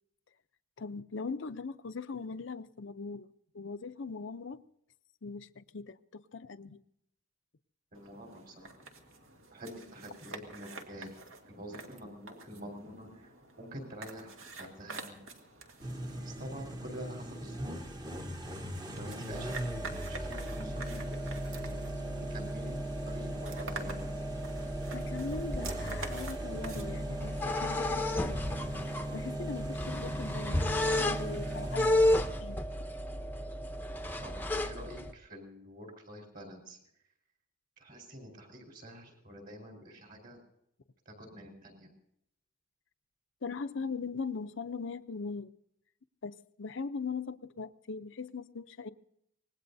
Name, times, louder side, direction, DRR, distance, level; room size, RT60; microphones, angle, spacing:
voice 1, 0.8-3.3 3.5-4.6 5.2-6.8 24.9-28.4 28.9-32.6 43.4-45.5 46.2-48.9, left 4 dB, 60° left, 0.6 m, -40 dB
voice 2, 7.9-8.8 9.5-11.1 11.4-15.2 16.2-17.9 18.6-18.7 19.0-21.8 22.3-24.2 34.2-34.3 34.6-36.8 37.8-40.4 41.0-41.9, equal, 45° right, 4.5 m, -47 dB
sound 1, 7.9-27.8, right 3 dB, 75° right, 2.2 m, -48 dB
sound 2, 15.8-32.6, equal, 20° right, 1.1 m, -40 dB
sound 3, 19.3-35.1, left 1 dB, 10° left, 0.7 m, -34 dB
25.5 x 19.5 x 2.7 m
head